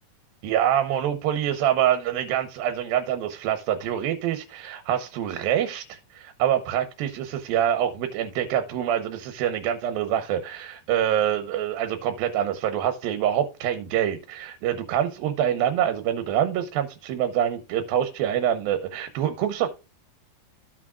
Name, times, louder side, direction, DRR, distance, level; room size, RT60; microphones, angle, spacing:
voice 1, 0.4-19.7, right 10 dB, 90° right, 2.7 m, -25 dB
15.0 x 6.1 x 2.3 m
omnidirectional pair, 4.1 m